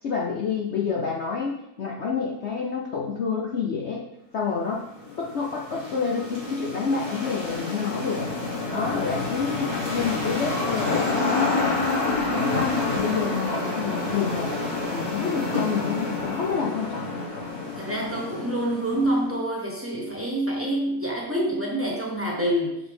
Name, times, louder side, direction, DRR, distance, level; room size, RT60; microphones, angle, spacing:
voice 1, 0.0-4.1 4.3-4.9 5.2-8.3 8.7-11.8 12.3-14.5 14.9-17.1, left 5 dB, 65° left, -2 dB, 0.7 m, -28 dB
sound 1, 4.7-19.2, left 3 dB, 30° right, 1.9 m, -28 dB
voice 2, 17.8-22.8, right 1 dB, 10° right, -2 dB, 0.6 m, -27 dB
7.4 x 4.0 x 3.5 m, 0.83 s
omnidirectional pair, 1.9 m